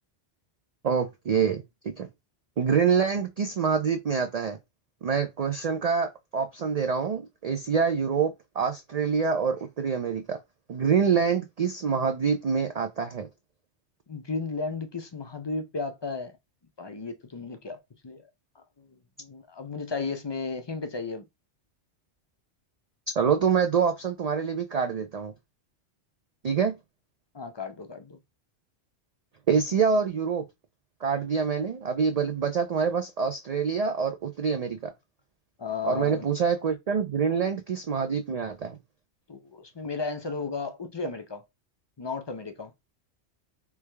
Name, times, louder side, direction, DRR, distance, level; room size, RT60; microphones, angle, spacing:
voice 1, 0.8-2.1 2.6-4.6 5.0-10.4 10.7-13.3 23.2-25.3 26.4-26.7 29.5-30.4 31.0-34.9 35.8-38.8, right 6 dB, 60° right, 0.4 m, -26 dB
voice 2, 14.1-16.3 16.8-18.3 18.8-18.9 19.2-21.3 27.3-28.2 35.6-36.3 39.3-41.5 42.0-42.7, left 4 dB, 40° left, 0.4 m, -34 dB
3.4 x 3.3 x 3.2 m
omnidirectional pair, 1.2 m